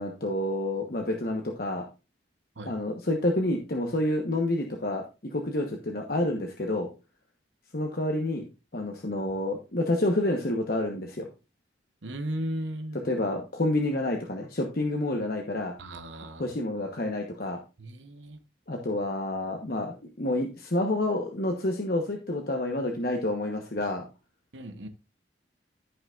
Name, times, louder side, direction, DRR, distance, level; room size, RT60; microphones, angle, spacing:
voice 1, 0.0-1.8 2.6-6.9 7.7-8.4 8.7-11.3 13.0-15.7 16.4-17.6 18.7-24.0, left 1 dB, 55° left, 1.2 m, -29 dB
voice 2, 12.0-13.0 15.8-16.5 17.8-18.4 24.5-24.9, right 1 dB, 85° right, 1.0 m, -36 dB
14.5 x 5.9 x 2.5 m
head